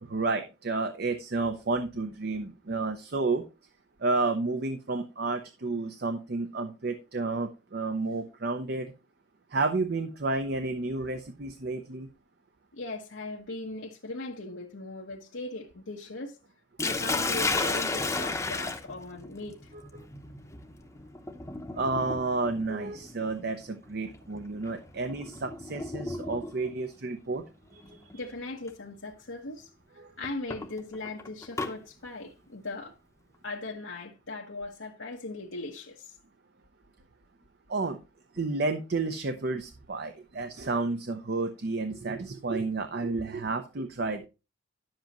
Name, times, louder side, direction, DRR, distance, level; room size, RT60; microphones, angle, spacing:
voice 1, 0.0-3.4 4.0-8.9 9.5-12.1 21.7-27.4 27.7-28.1 30.0-30.1 37.7-38.0 38.3-44.3, right 3 dB, 55° right, 0.7 m, -31 dB
voice 2, 12.7-16.4 16.8-19.7 28.1-32.9 33.4-36.1, left 2 dB, 80° left, 1.1 m, -39 dB
Sink (filling or washing), 16.8-26.7 27.8-28.2 28.7-28.8 30.2-31.7, left 3 dB, 15° left, 0.8 m, -34 dB
10.5 x 7.6 x 3.0 m
head